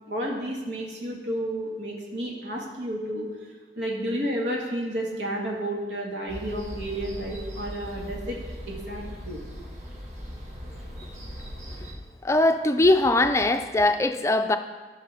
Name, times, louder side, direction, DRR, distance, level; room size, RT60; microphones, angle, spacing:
voice 1, 0.1-3.3 3.8-8.4 8.7-9.4, right 1 dB, 85° right, -2 dB, 1.8 m, -31 dB
sound 1, 6.3-11.9, equal, 40° right, 1.5 m, -39 dB
voice 2, 12.2-14.6, left 2 dB, 15° left, 7 dB, 0.4 m, -21 dB
14.5 x 5.7 x 3.5 m, 1.4 s
head